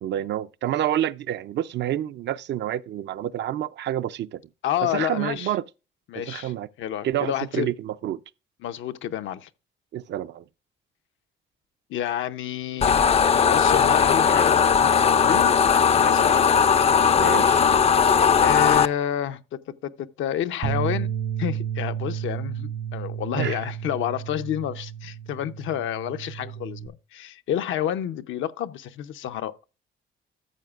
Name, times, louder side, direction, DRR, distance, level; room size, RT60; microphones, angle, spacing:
voice 1, 0.0-4.4 4.8-5.6 6.3-6.7 7.0-8.2 9.9-10.4 17.2-17.6 23.3-23.6, right 12 dB, 65° right, 0.4 m, -28 dB
voice 2, 4.6-5.5 6.1-6.5 6.8-7.7 8.6-9.5 11.9-12.9 13.5-16.4 18.4-19.7 20.2-21.1 21.4-29.5, left 10 dB, 75° left, 0.6 m, -29 dB
sound 1, 12.8-18.9, left 6 dB, 30° left, 0.4 m, -18 dB
Bass guitar, 20.6-26.9, right 9 dB, 80° right, 2.2 m, -32 dB
13.5 x 7.9 x 2.4 m
cardioid pair, 90°, 20 cm